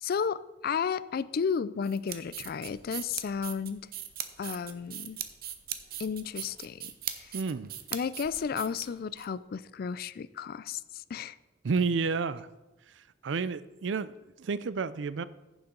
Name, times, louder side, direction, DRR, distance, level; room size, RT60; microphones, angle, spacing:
voice 1, 0.0-3.9 4.4-5.2 6.0-6.9 7.2-7.3 7.9-11.4, left 6 dB, 55° left, 17 dB, 0.4 m, -33 dB
sound 1, 1.8-9.3, right 11 dB, 55° right, 0.8 m, -39 dB
voice 2, 7.3-7.7 11.6-12.5 12.9-15.2, right 4 dB, 80° right, 16 dB, 0.5 m, -31 dB
15.0 x 7.1 x 3.8 m, 1.1 s
head